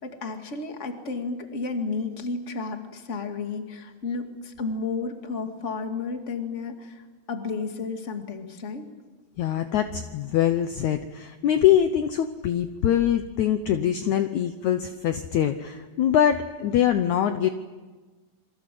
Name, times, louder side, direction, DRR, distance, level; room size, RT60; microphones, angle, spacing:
voice 1, 0.0-8.9, left 4 dB, 25° left, 5 dB, 2.1 m, -32 dB
voice 2, 9.4-17.5, left 10 dB, 70° left, 8 dB, 2.0 m, -23 dB
28.0 x 23.5 x 7.8 m, 1.3 s
omnidirectional pair, 4.1 m